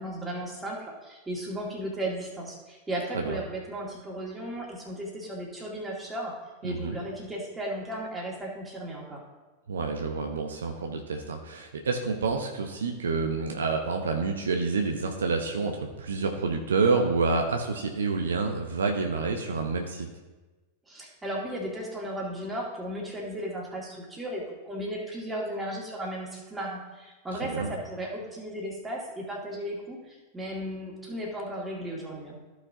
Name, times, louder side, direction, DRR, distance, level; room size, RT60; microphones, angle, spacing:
voice 1, 0.0-6.3 6.6-9.2 20.9-32.4, right 1 dB, 10° right, -3 dB, 2.2 m, -35 dB
voice 2, 6.6-7.0 9.7-20.1 27.3-27.7, right 4 dB, 65° right, 3 dB, 0.8 m, -28 dB
14.0 x 6.0 x 2.8 m, 1.2 s
figure-of-eight pair, 90°, 0 cm